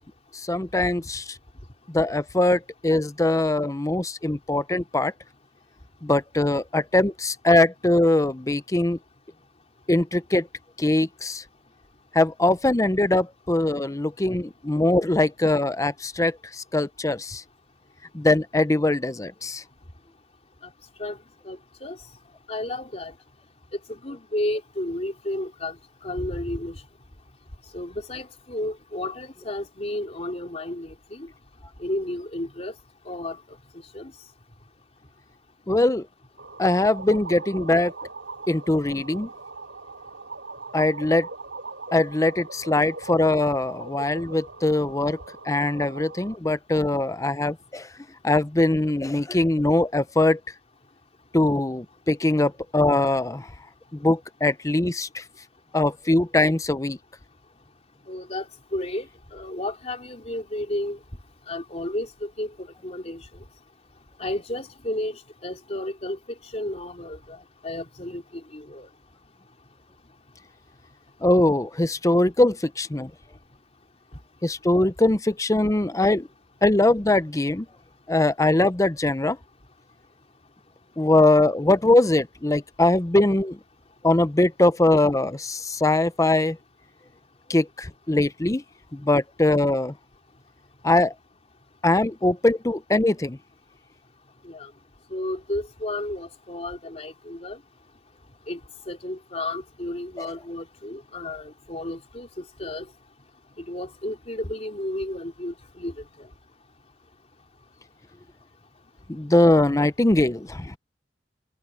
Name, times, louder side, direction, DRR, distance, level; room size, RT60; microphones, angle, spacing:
voice 1, 0.3-1.4 1.9-5.1 6.0-9.0 9.9-10.5 10.8-11.4 12.1-17.4 18.1-19.6 35.7-36.1 36.6-37.9 38.5-39.3 40.7-41.3 41.9-45.2 45.4-47.9 48.2-50.4 51.3-53.5 53.9-55.2 55.7-57.0 71.2-73.1 74.4-76.3 76.6-77.7 78.1-79.4 81.0-83.6 84.0-86.6 87.5-88.6 88.9-89.9 90.8-91.1 91.8-93.4 100.2-100.3 109.1-110.8, left 2 dB, 20° left, 0.6 m, -22 dB
voice 2, 21.4-22.0 22.5-23.1 23.9-25.8 26.0-26.8 27.7-31.3 31.8-32.7 33.0-33.4 33.9-34.1 58.1-59.1 59.3-61.0 61.5-62.5 62.8-63.3 64.2-66.2 66.5-68.2 68.5-68.9 94.4-94.7 95.1-97.6 98.5-98.6 98.9-102.9 103.6-105.9, left 1 dB, 35° left, 3.5 m, -32 dB
sound 1, 36.4-46.4, right 3 dB, 90° right, 5.1 m, -40 dB
head